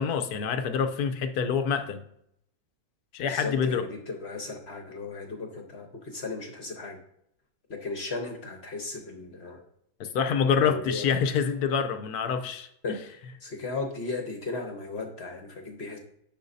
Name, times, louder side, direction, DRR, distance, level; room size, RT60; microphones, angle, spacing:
voice 1, 0.0-2.0 3.1-3.8 10.1-12.7, left 6 dB, 70° left, 8 dB, 1.1 m, -26 dB
voice 2, 3.2-7.0 7.7-9.6 10.5-11.0 12.8-13.0 13.4-16.0, left 3 dB, 45° left, 3 dB, 1.1 m, -36 dB
10.0 x 6.3 x 2.7 m, 0.75 s
omnidirectional pair, 1.8 m